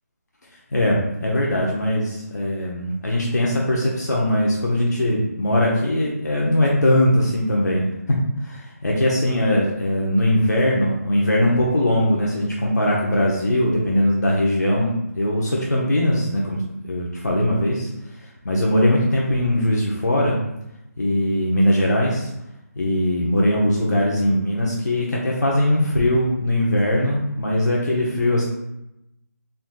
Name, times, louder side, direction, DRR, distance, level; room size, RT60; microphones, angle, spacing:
voice 1, 0.7-20.4 21.0-22.3 22.8-28.4, left 1 dB, 75° left, -4 dB, 1.0 m, -20 dB
4.3 x 3.8 x 2.3 m, 0.86 s
figure-of-eight pair, 165°, 9 cm